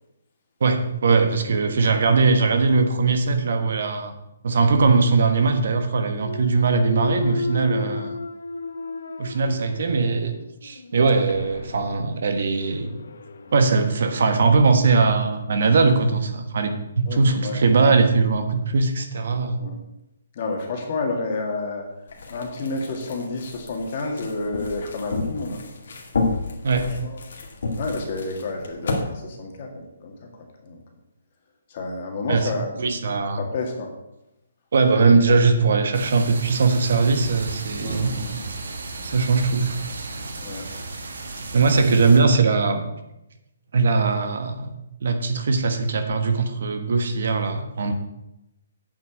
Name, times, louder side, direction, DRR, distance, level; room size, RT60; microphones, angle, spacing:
voice 1, 0.6-4.1 4.4-8.1 9.2-10.3 10.6-12.9 13.5-19.6 26.6-26.9 32.3-32.5 32.8-33.4 34.7-38.1 39.0-39.8 41.5-42.8 43.7-44.7 45.0-47.9, right 4 dB, 50° right, 7 dB, 1.3 m, -20 dB
Thump thud, 6.1-10.1 10.6-15.3, left 3 dB, 75° left, 1.1 m, -35 dB
voice 2, 17.1-17.6 19.6-19.7 20.4-21.9 22.3-25.6 26.8-27.2 27.8-30.3 30.6-30.8 31.7-32.8 33.4-33.9 37.8-38.5 40.4-40.7, left 3 dB, 30° left, 2 dB, 2.0 m, -30 dB
sound 1, 22.1-29.0, left 3 dB, 55° left, 2.2 m, -31 dB
sound 2, 35.9-42.2, right 3 dB, 75° right, 2.2 m, -34 dB
8.9 x 6.2 x 8.0 m, 0.89 s
hypercardioid pair, 175°, 0 cm